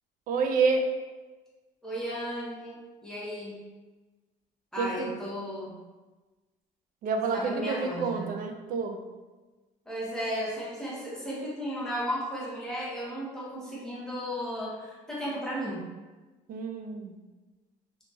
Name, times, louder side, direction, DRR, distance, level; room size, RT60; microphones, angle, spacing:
voice 1, 0.3-0.9 4.8-5.1 7.0-9.0 16.5-17.2, right 4 dB, 55° right, 5 dB, 0.4 m, -28 dB
voice 2, 1.8-3.6 4.7-5.7 7.3-8.2 9.9-15.9, equal, 5° left, -7 dB, 0.9 m, -34 dB
2.9 x 2.7 x 2.2 m, 1.2 s
cardioid pair, 110°, 17 cm